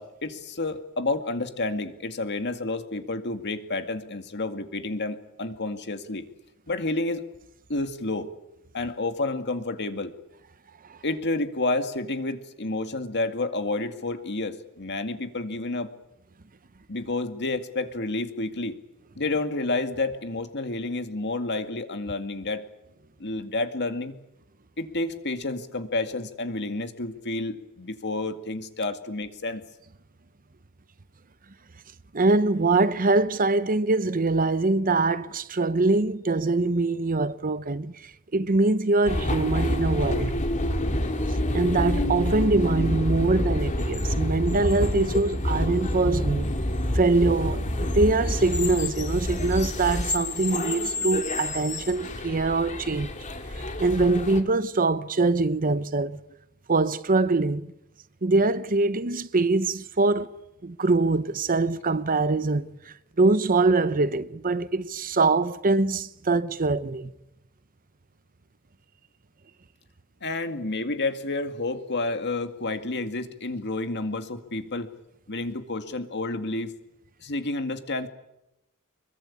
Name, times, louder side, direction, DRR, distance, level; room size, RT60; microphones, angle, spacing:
voice 1, 0.0-6.2 6.7-7.2 7.7-8.3 8.7-10.1 11.0-15.9 16.9-18.7 19.2-22.6 23.2-24.1 24.8-29.6 70.2-74.9 75.3-76.7 77.2-78.1, left 2 dB, 55° left, 2.2 m, -30 dB
voice 2, 32.1-40.4 41.5-46.5 46.9-53.1 53.8-56.2 56.7-57.7 58.2-62.7 63.2-67.1, right 3 dB, 40° right, 0.9 m, -23 dB
sound 1, 39.1-54.4, left 1 dB, 35° left, 2.6 m, -28 dB
25.5 x 22.5 x 8.6 m
head